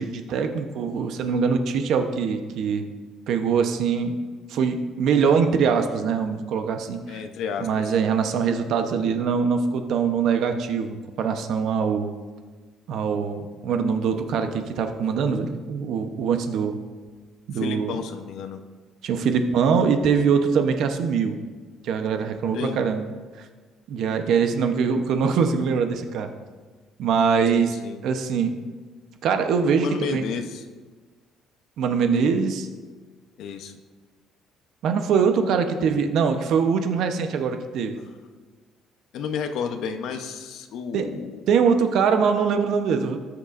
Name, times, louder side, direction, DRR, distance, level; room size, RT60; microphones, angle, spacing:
voice 1, 0.0-2.9 3.3-4.2 4.5-7.2 7.6-12.1 12.9-16.8 17.5-17.9 19.0-21.4 21.8-23.1 23.4-23.5 23.9-26.3 27.0-27.7 28.0-28.5 29.2-30.2 31.8-32.7 34.8-38.0 40.9-41.1 41.5-43.2, right 6 dB, 60° right, 7 dB, 0.8 m, -23 dB
voice 2, 7.1-7.9 17.5-18.6 22.5-22.8 27.5-28.0 29.8-30.6 33.4-33.7 39.1-41.4, left 6 dB, 65° left, 7 dB, 0.7 m, -31 dB
18.5 x 6.7 x 2.5 m, 1.4 s
cardioid pair, 165°, 0 cm